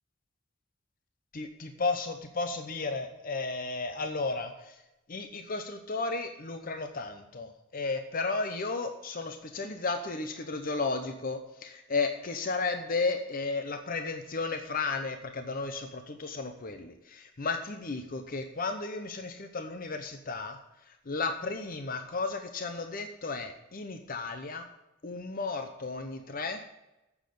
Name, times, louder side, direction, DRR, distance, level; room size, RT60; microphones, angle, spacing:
voice 1, 1.3-4.8 5.1-20.6 21.1-24.7 25.0-26.6, left 3 dB, 45° left, 7 dB, 0.8 m, -34 dB
9.2 x 7.4 x 6.7 m, 0.96 s
head